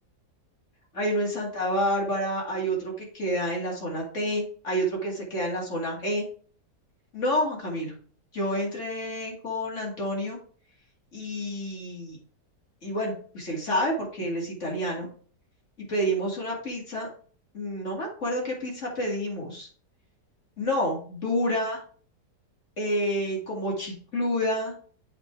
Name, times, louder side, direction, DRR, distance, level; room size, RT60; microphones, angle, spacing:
voice 1, 1.0-6.2 7.1-7.9 8.3-10.4 11.1-12.2 12.8-15.1 15.8-17.1 17.5-19.7 20.6-21.8 22.8-24.7, equal, 45° left, -2 dB, 2.6 m, -29 dB
7.9 x 3.6 x 4.7 m, 0.43 s
omnidirectional pair, 1.8 m